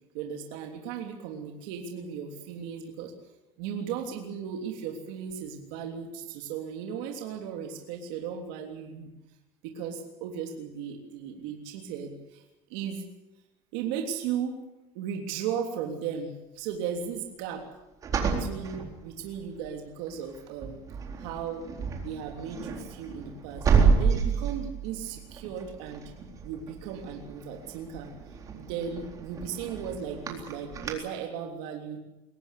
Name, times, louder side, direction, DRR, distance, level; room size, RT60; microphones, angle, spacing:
voice 1, 0.1-3.1 3.6-9.1 9.6-12.4 12.7-13.0 13.7-14.5 14.9-17.6 18.1-20.8 21.2-21.6 22.0-26.0 26.4-28.1 28.5-32.0, right 7 dB, 75° right, 2 dB, 3.3 m, -36 dB
sound 1, 18.0-19.6 20.1-20.4 20.6-30.9, right 5 dB, 30° right, 3.9 m, -30 dB
23.0 x 18.0 x 8.4 m, 0.99 s
cardioid pair, 155°, 12 cm